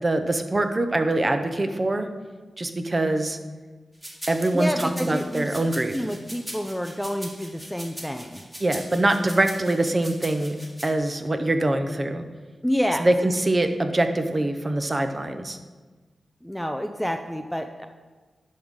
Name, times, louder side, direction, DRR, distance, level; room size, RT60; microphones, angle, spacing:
voice 1, 0.0-2.1 2.6-3.4 4.3-6.0 8.6-10.6 10.8-12.2 13.0-15.6, right 2 dB, 30° right, 7 dB, 0.7 m, -24 dB
sound 1, 4.0-10.9, right 1 dB, 10° right, 1.8 m, -40 dB
voice 2, 4.5-8.4 12.6-13.1 16.4-17.9, equal, 5° left, 6 dB, 0.4 m, -28 dB
10.5 x 3.7 x 6.3 m, 1.3 s
wide cardioid pair, 95°, 0 cm